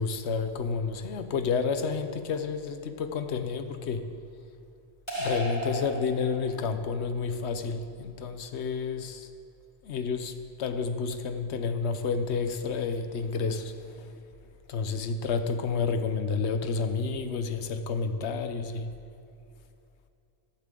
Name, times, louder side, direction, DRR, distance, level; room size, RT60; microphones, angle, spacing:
voice 1, 0.0-4.1 5.2-9.3 9.8-14.2 14.7-18.9, left 5 dB, 80° left, 9 dB, 1.0 m, -30 dB
sound 1, 5.1-6.7, right 1 dB, 25° left, 3.1 m, -34 dB
15.0 x 12.0 x 3.8 m, 2.6 s
omnidirectional pair, 1.1 m